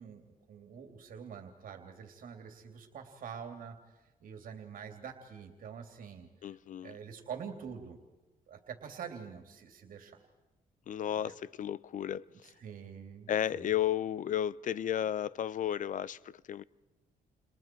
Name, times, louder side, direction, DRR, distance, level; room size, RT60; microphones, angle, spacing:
voice 1, 0.0-3.8 4.2-6.3 6.8-8.0 8.5-10.2 11.2-11.3 12.6-13.7, right 7 dB, 70° right, 3.1 m, -46 dB
voice 2, 6.4-7.0 10.9-12.5 13.3-16.6, left 10 dB, 60° left, 0.7 m, -33 dB
30.0 x 30.0 x 4.6 m
cardioid pair, 115°, 15 cm